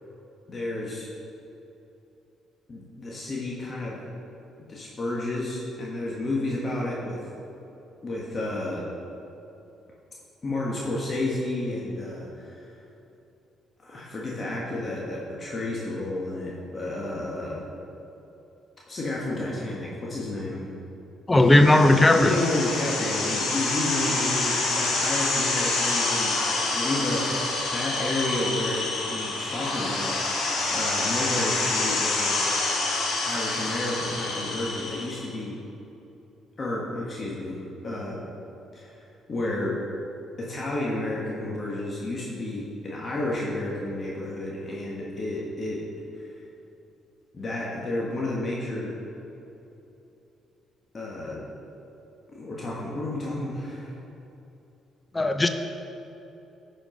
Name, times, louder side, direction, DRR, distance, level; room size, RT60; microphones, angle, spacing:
voice 1, 0.5-1.1 2.7-4.0 4.6-7.2 8.0-8.8 10.4-12.8 13.8-17.7 18.9-20.7 22.1-32.3 33.3-35.6 36.6-37.6 37.8-38.2 38.7-39.7 40.4-45.8 46.1-46.3 47.3-48.9 50.9-51.5 52.3-54.0, left 2 dB, 40° left, -5 dB, 1.7 m, -31 dB
voice 2, 21.3-22.4 55.1-55.5, left 1 dB, 20° left, 7 dB, 0.7 m, -17 dB
sound 1, 21.5-35.2, left 2 dB, 75° left, 1.9 m, -27 dB
11.0 x 5.1 x 5.1 m, 3.0 s
supercardioid pair, 60°, 0 cm